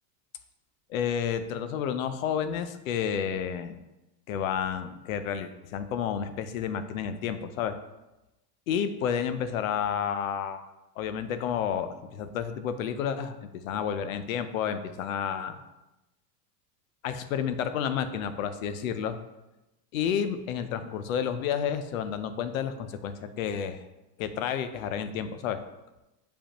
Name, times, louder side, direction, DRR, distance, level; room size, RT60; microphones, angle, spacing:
voice 1, 0.9-3.7 4.3-7.8 8.7-10.6 11.0-15.6 17.0-19.2 19.9-23.8 24.2-25.6, left 8 dB, 55° left, 10 dB, 0.6 m, -30 dB
6.8 x 5.2 x 2.9 m, 0.99 s
supercardioid pair, 175°, 50 cm